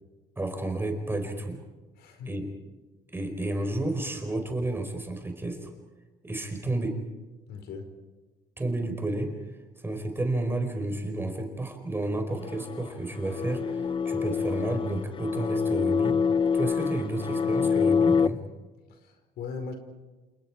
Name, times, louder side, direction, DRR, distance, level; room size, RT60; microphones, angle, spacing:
voice 1, 0.4-1.6 2.3-2.5 3.1-5.7 6.2-7.0 8.6-9.3 9.8-16.2 16.5-18.4, right 2 dB, 15° right, 5 dB, 4.7 m, -31 dB
voice 2, 2.0-2.3 7.5-7.9 18.9-19.7, left 5 dB, 70° left, 6 dB, 4.8 m, -39 dB
sound 1, 12.3-18.3, left 6 dB, 30° left, 0.7 m, -26 dB
29.0 x 28.5 x 4.9 m, 1.2 s
cardioid pair, 110°, 17 cm